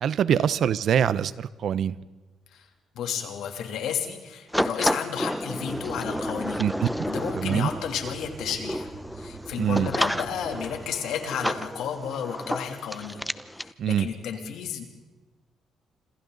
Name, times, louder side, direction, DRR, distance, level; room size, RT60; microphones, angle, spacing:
voice 1, 0.0-1.9 6.6-6.9 7.3-7.7 9.6-9.9 13.8-14.1, right 9 dB, 65° right, 17 dB, 0.7 m, -24 dB
voice 2, 2.9-6.7 7.1-13.3 13.6-14.8, left 8 dB, 80° left, 4 dB, 3.0 m, -32 dB
sound 1, 4.5-13.7, equal, ahead, 0.8 m, -31 dB
sound 2, 5.6-10.8, right 5 dB, 90° right, 4.1 m, -46 dB
27.5 x 26.5 x 4.0 m, 1.2 s
cardioid pair, 90°, 0 cm